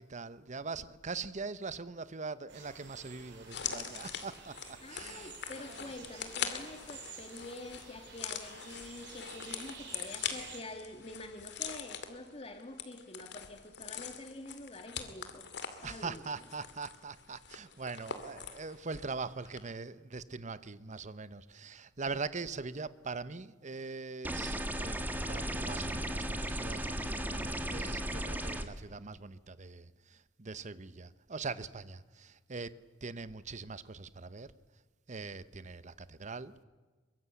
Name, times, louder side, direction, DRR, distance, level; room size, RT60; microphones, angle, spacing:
voice 1, 0.0-5.3 5.6-5.8 15.8-32.7 33.0-34.5 35.1-36.6, right 4 dB, 40° right, 0.9 m, -42 dB
sound 1, 2.5-10.6, right 5 dB, 65° right, 6.6 m, -51 dB
sound 2, 3.5-19.2 19.4-19.6, left 8 dB, 65° left, 2.5 m, -43 dB
voice 2, 4.8-15.4 15.8-16.3, left 2 dB, 30° left, 1.8 m, -47 dB
sound 3, 24.2-28.6, right 1 dB, 10° right, 1.6 m, -35 dB
23.5 x 22.5 x 8.4 m
head